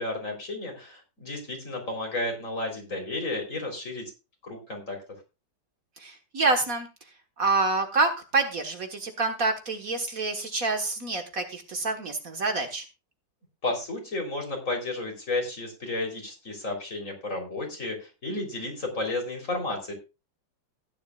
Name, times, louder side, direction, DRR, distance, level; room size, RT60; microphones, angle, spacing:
voice 1, 0.0-4.0 4.4-5.0 13.6-19.9, left 2 dB, 45° left, 2 dB, 4.1 m, -32 dB
voice 2, 6.0-6.9 7.4-12.9, right 3 dB, 50° right, 4 dB, 1.8 m, -27 dB
16.0 x 10.5 x 2.4 m, 0.28 s
omnidirectional pair, 1.9 m